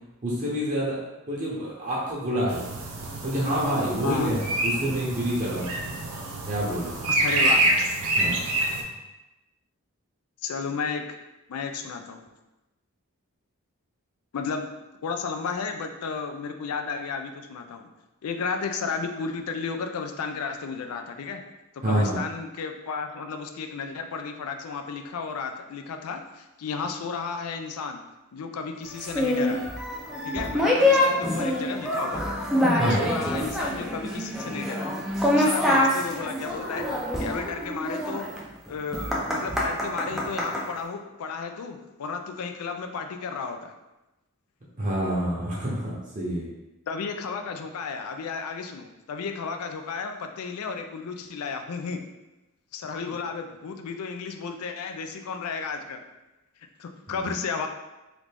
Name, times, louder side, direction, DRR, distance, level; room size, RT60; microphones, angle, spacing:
voice 1, 0.2-1.0 1.3-2.6 3.2-5.8 6.4-6.9 8.2-8.4 21.8-22.1 32.8-33.1 44.8-46.4, equal, 35° right, -5 dB, 0.7 m, -27 dB
sound 1, 2.5-8.8, right 1 dB, 80° right, 0.6 m, -27 dB
voice 2, 4.0-4.3 7.1-7.6 10.4-11.2 11.5-12.2 14.3-14.7 15.0-17.9 18.2-21.4 21.8-28.0 28.3-29.6 30.2-32.2 32.7-34.9 35.3-36.9 37.2-38.3 38.7-43.7 46.9-52.0 52.7-56.0 56.8-57.7, left 5 dB, 80° left, 6 dB, 0.4 m, -33 dB
sound 2, 29.0-40.6, left 1 dB, ahead, 0.3 m, -25 dB
3.3 x 2.5 x 3.3 m, 1.0 s
head